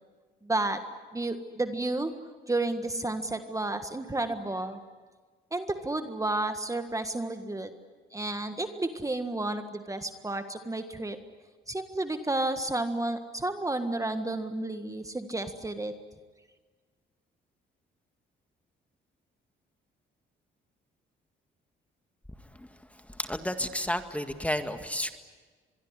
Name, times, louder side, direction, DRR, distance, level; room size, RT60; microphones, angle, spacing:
voice 1, 0.4-0.8 1.1-2.1 2.5-4.8 5.5-7.7 8.1-11.2 11.7-15.9, right 2 dB, 15° right, 8 dB, 1.6 m, -31 dB
voice 2, 23.2-25.1, left 1 dB, 5° left, 8 dB, 1.9 m, -31 dB
25.0 x 22.0 x 10.0 m, 1.4 s
cardioid pair, 90°, 20 cm